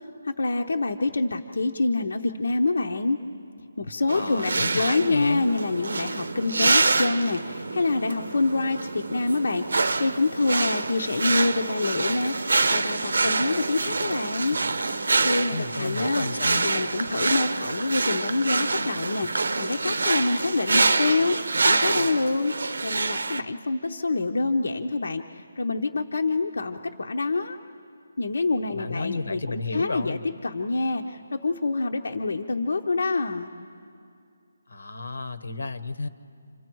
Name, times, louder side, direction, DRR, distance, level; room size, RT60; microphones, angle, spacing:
voice 1, 0.2-3.2 3.8-14.6 15.2-16.3 16.6-21.4 21.6-22.5 22.8-25.2 25.6-27.6 28.2-30.2 30.4-33.5, left 3 dB, 70° left, 4 dB, 0.8 m, -26 dB
voice 2, 4.1-5.5 15.5-16.7 28.7-30.3 34.7-36.1, left 3 dB, 90° left, 12 dB, 1.2 m, -32 dB
sound 1, 4.1-23.4, right 3 dB, 80° right, 0.8 m, -26 dB
29.0 x 27.0 x 4.6 m, 2.4 s
hypercardioid pair, 180°, 0 cm